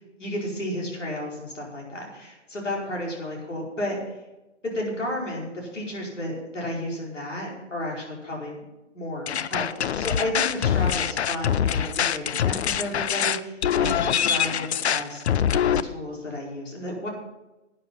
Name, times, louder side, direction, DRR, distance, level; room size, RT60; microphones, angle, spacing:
voice 1, 0.2-4.0 4.6-8.7 8.9-15.4 15.8-17.1, left 1 dB, 90° left, -3 dB, 4.9 m, -32 dB
sound 1, 9.3-15.8, left 9 dB, 65° left, 0.6 m, -24 dB
12.0 x 9.3 x 5.7 m, 1.0 s
figure-of-eight pair, 130°, 36 cm